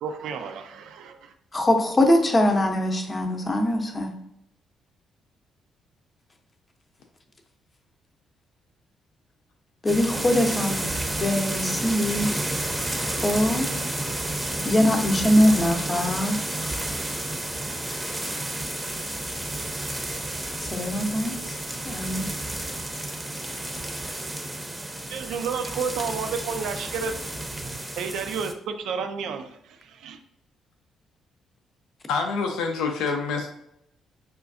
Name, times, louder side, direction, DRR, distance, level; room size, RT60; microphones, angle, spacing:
voice 1, 0.0-1.3 25.1-27.1 27.6-27.7 28.0-30.2, right 6 dB, 70° right, 7 dB, 0.3 m, -31 dB
voice 2, 1.5-4.1 9.8-10.8 11.2-12.3 13.1-13.7 14.6-16.4 20.6-21.5 21.9-22.3, left 1 dB, 30° left, 4 dB, 0.6 m, -22 dB
sound 1, 9.9-28.5, right 1 dB, 20° right, 0.6 m, -31 dB
voice 3, 32.1-33.5, left 4 dB, 70° left, 3 dB, 0.4 m, -26 dB
5.0 x 2.3 x 2.5 m, 0.78 s
hypercardioid pair, 45°, 0 cm